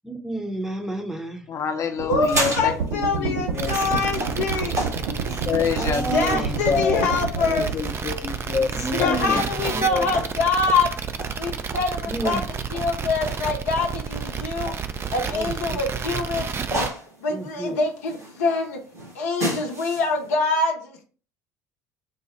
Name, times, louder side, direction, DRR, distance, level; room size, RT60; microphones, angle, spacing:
voice 1, 0.0-1.4 3.2-3.3 5.8-7.1 7.6-7.7 8.7-9.4 9.7-10.2 12.1-12.4 15.3-15.8 17.3-17.7, right 2 dB, 5° right, 3 dB, 0.7 m, -31 dB
voice 2, 1.5-2.7 3.2-3.7 5.5-7.0 7.3-8.7 9.0-9.4 9.9-10.1, left 6 dB, 40° left, 6 dB, 0.6 m, -26 dB
voice 3, 2.0-4.9 6.1-7.7 8.6-10.9 11.4-12.4 12.7-14.7 15.1-16.5 17.2-18.8 19.1-21.0, left 3 dB, 75° left, 2 dB, 0.7 m, -25 dB
sound 1, 2.0-7.7, right 5 dB, 70° right, 0.9 m, -30 dB
sound 2, 2.1-20.3, right 1 dB, 90° right, 1.6 m, -35 dB
sound 3, 3.6-16.9, right 6 dB, 30° right, 0.4 m, -31 dB
4.1 x 2.0 x 4.0 m, 0.39 s
figure-of-eight pair, 60°, 9 cm